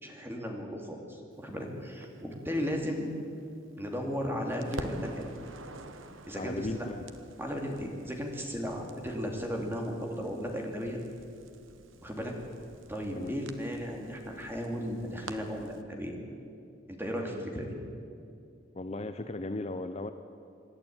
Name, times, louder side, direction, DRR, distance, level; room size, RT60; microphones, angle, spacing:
voice 1, 0.0-3.1 3.8-5.3 6.3-6.9 7.4-11.0 12.0-12.3 12.9-16.2 16.9-17.7, equal, 10° right, 1 dB, 2.6 m, -35 dB
Crackle, 2.0-4.2 4.5-15.8, right 2 dB, 80° right, 1.2 m, -49 dB
voice 2, 6.3-7.1 13.1-13.4 18.7-20.1, left 2 dB, 30° left, 9 dB, 0.6 m, -36 dB
26.0 x 11.5 x 8.8 m, 2.5 s
head